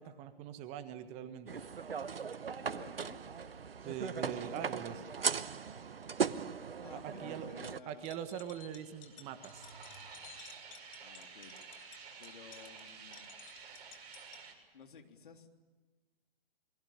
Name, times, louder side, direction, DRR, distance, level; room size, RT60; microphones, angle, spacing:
voice 1, 0.0-1.6 3.8-5.0 6.9-7.5 7.8-9.7, right 9 dB, 20° right, 10 dB, 1.4 m, -43 dB
sound 1, 1.5-7.8, right 6 dB, 70° right, 1.1 m, -38 dB
voice 2, 2.6-3.2 6.8-8.1 11.0-11.5 12.2-13.4 14.7-15.5, left 5 dB, 55° left, 4 dB, 3.5 m, -54 dB
sound 2, 7.4-14.5, right 5 dB, 45° right, 6.8 m, -52 dB
sound 3, 7.9-14.4, left 11 dB, 35° left, 1.8 m, -56 dB
28.5 x 21.5 x 9.0 m, 1.3 s
figure-of-eight pair, 130°, 30 cm